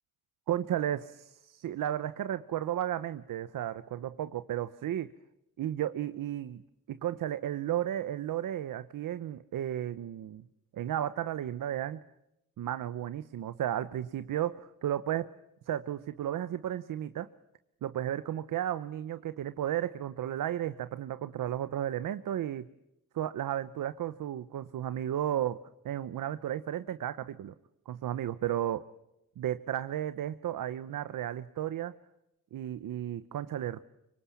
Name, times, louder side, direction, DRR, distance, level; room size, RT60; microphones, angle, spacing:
voice 1, 0.5-5.1 5.6-6.6 6.9-10.4 10.7-12.0 12.6-15.3 15.7-17.3 17.8-22.7 23.1-27.5 27.9-28.9 29.4-31.9 32.5-33.8, right 11 dB, 90° right, 13 dB, 0.9 m, -33 dB
26.5 x 24.0 x 8.5 m, 0.85 s
cardioid pair, 110°, 32 cm